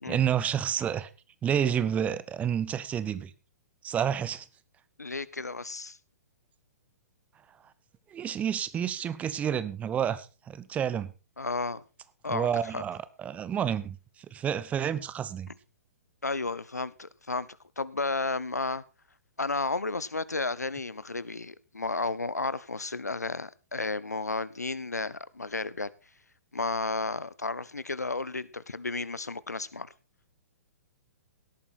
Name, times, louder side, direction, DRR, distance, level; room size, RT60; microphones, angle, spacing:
voice 1, 0.1-1.1 1.4-3.3 3.8-4.5 8.1-11.1 12.3-14.0 14.3-15.5, right 9 dB, 15° right, 0.9 m, -29 dB
voice 2, 5.0-6.0 11.4-11.8 12.2-12.8 16.2-17.5 17.8-18.8 19.4-25.9 26.5-29.9, left 3 dB, 80° left, 0.8 m, -32 dB
17.5 x 8.9 x 4.4 m
figure-of-eight pair, 115°, 9 cm